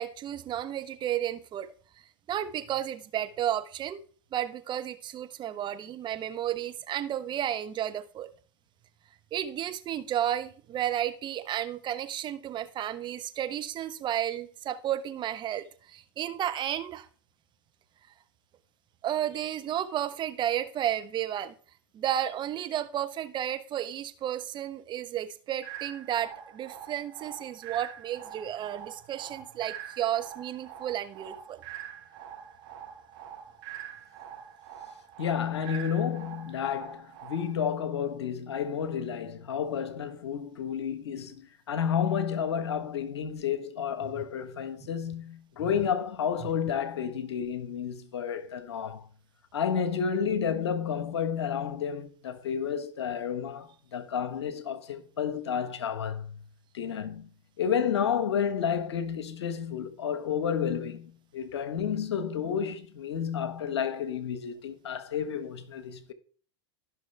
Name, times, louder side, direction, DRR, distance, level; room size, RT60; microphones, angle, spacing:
voice 1, 0.0-1.7 2.3-4.0 4.3-8.3 9.3-17.1 19.0-21.5 21.9-31.6 44.1-44.2 46.4-46.5, right 11 dB, 35° right, 1.0 m, -32 dB
sound 1, 25.6-37.6, right 9 dB, 60° right, 4.1 m, -45 dB
voice 2, 35.2-49.0 49.5-56.4 56.7-57.3 57.6-66.1, left 7 dB, 75° left, 1.2 m, -31 dB
14.5 x 6.1 x 3.3 m
hypercardioid pair, 95°, 14 cm